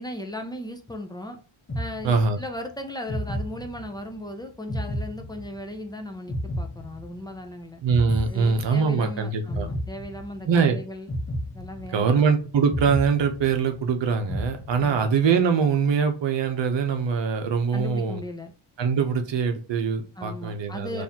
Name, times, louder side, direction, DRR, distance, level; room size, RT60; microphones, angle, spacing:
voice 1, 0.0-1.4 1.7-7.8 8.3-11.1 11.5-12.3 14.8-15.1 17.7-18.5 20.2-21.0, left 1 dB, 10° left, 4 dB, 0.3 m, -37 dB
sound 1, 1.7-2.6 3.1-4.1 4.7-5.8 6.3-7.5 7.9-9.1 9.5-10.5 11.1-12.2 12.7-13.9 14.3-15.2, equal, 25° left, 0.9 m, -32 dB
voice 2, 2.0-2.4 7.8-9.7 10.4-10.8 11.9-18.2 18.8-21.0, right 5 dB, 60° right, 6 dB, 0.8 m, -23 dB
4.0 x 2.6 x 2.8 m, 0.37 s
wide cardioid pair, 140°, 49 cm